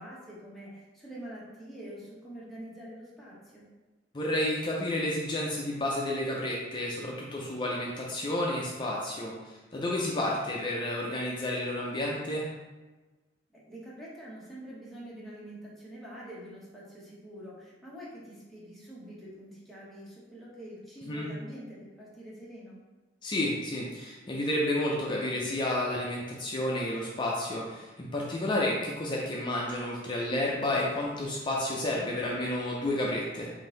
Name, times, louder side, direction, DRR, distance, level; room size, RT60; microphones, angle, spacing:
voice 1, 0.0-3.7 13.5-22.8, equal, ahead, -7 dB, 1.0 m, -45 dB
voice 2, 4.1-12.5 21.1-21.3 23.2-33.5, left 1 dB, 25° left, -3 dB, 0.4 m, -31 dB
3.7 x 2.6 x 3.9 m, 1.2 s
head